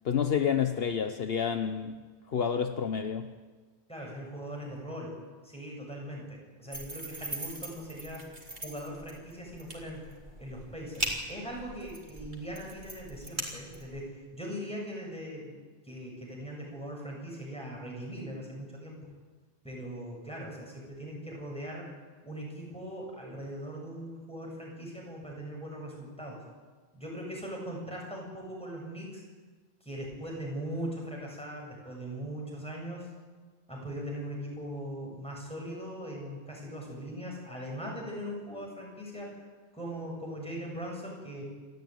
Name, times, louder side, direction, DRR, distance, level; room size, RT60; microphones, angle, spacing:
voice 1, 0.0-2.0 2.3-3.3, left 7 dB, 65° left, 8 dB, 1.1 m, -29 dB
voice 2, 3.9-5.1 5.4-8.3 8.6-19.1 19.6-21.9 22.2-26.4 26.9-29.2 29.8-33.1 33.7-39.4 39.7-41.4, equal, 5° left, -2 dB, 7.6 m, -40 dB
sound 1, 6.7-14.1, right 2 dB, 45° right, 3.6 m, -40 dB
28.0 x 14.0 x 9.4 m, 1.4 s
omnidirectional pair, 1.1 m